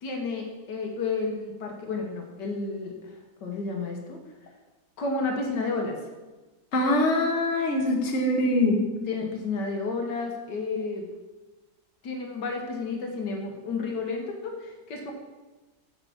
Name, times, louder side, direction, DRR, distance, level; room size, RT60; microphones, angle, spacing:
voice 1, 0.0-3.0 3.4-4.2 5.0-6.0 9.1-11.0 12.0-15.1, left 4 dB, 75° left, 2 dB, 1.7 m, -31 dB
voice 2, 6.7-8.8, left 1 dB, 40° left, 1 dB, 1.5 m, -23 dB
6.8 x 5.6 x 7.1 m, 1.2 s
omnidirectional pair, 1.9 m